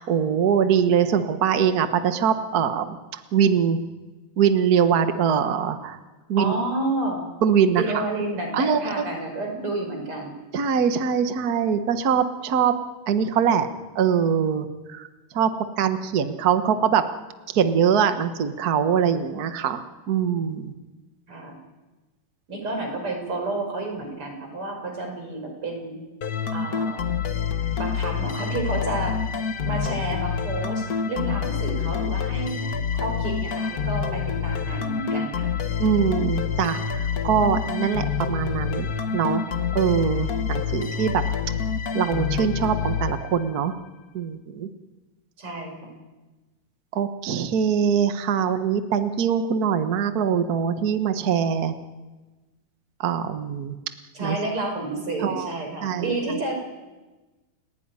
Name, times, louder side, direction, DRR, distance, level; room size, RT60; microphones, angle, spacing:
voice 1, 0.0-3.8 4.4-6.0 6.3-6.5 7.4-8.0 8.5-9.0 10.5-12.7 13.1-13.7 13.9-15.1 15.3-15.5 15.8-17.0 17.5-20.7 35.8-38.9 39.1-39.4 39.7-41.2 41.9-43.7 44.1-44.7 46.9-51.7 53.0-53.8 54.2-54.4 55.2-55.5 55.8-56.2, right 7 dB, 70° right, 9 dB, 0.8 m, -23 dB
voice 2, 6.4-7.2 7.7-10.3 21.3-21.6 22.5-26.0 26.5-27.0 27.8-29.2 29.6-35.5 45.4-46.0 54.1-56.6, right 2 dB, 40° right, 3 dB, 6.4 m, -30 dB
sound 1, 26.2-43.7, left 6 dB, 60° left, 0.9 m, -27 dB
30.0 x 17.0 x 9.7 m, 1.2 s
omnidirectional pair, 3.7 m